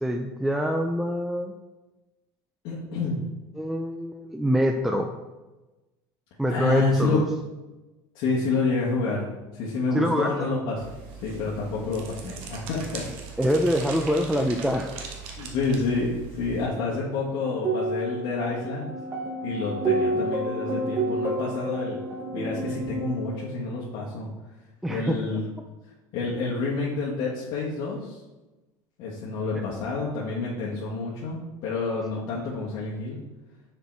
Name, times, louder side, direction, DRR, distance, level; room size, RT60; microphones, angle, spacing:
voice 1, 0.0-1.5 3.6-5.1 6.4-7.2 9.9-10.5 13.4-14.9 24.8-25.2 29.5-29.6, equal, ahead, 4 dB, 0.4 m, -25 dB
voice 2, 2.6-3.2 6.5-7.2 8.1-9.2 9.5-10.8 11.2-13.0 15.4-18.9 19.4-22.0 22.3-24.3 24.9-25.4 26.1-28.2 29.0-33.2, left 3 dB, 65° left, -6 dB, 1.5 m, -28 dB
sound 1, 10.8-16.7, right 6 dB, 70° right, 1.3 m, -40 dB
sound 2, 17.4-23.4, right 2 dB, 20° right, 1.1 m, -29 dB
6.7 x 4.6 x 4.6 m, 1.1 s
cardioid pair, 135°, 10 cm